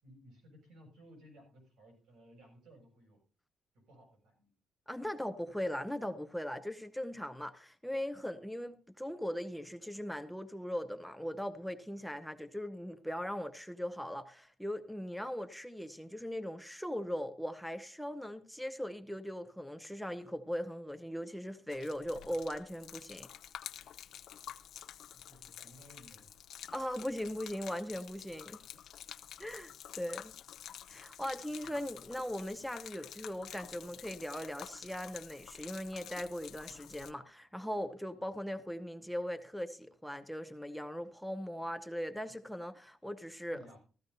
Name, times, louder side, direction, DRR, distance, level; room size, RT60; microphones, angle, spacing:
voice 1, 0.0-3.2 3.7-4.5 25.1-26.4 28.6-28.8 31.6-31.8 43.5-43.8, equal, 80° right, 7.0 m, -58 dB
voice 2, 4.9-23.3 26.7-28.6 29.4-30.3 30.9-43.8, equal, ahead, 0.7 m, -39 dB
Gurgling / Liquid, 21.7-37.1, left 10 dB, 70° left, 0.7 m, -50 dB
15.0 x 14.0 x 2.7 m
cardioid pair, 105°, 0 cm